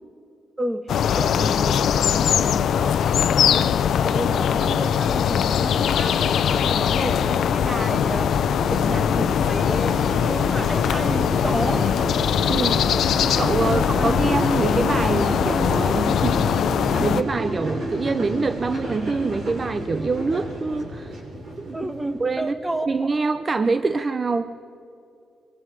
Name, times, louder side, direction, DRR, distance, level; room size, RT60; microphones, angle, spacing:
voice 1, 0.6-0.9 1.1-3.7 4.0-11.9 13.7-14.2 21.7-22.9, right 1 dB, 15° right, 9 dB, 1.4 m, -31 dB
sound 1, 0.9-17.2, left 8 dB, 70° left, 0.7 m, -21 dB
sound 2, 6.2-22.6, right 1 dB, 55° right, 6.8 m, -32 dB
voice 2, 12.5-16.5 17.0-21.1 21.6-21.9 22.2-22.5 22.9-24.5, right 4 dB, 30° right, 11 dB, 0.6 m, -25 dB
27.5 x 23.5 x 4.9 m, 2.7 s
cardioid pair, 120°, 0 cm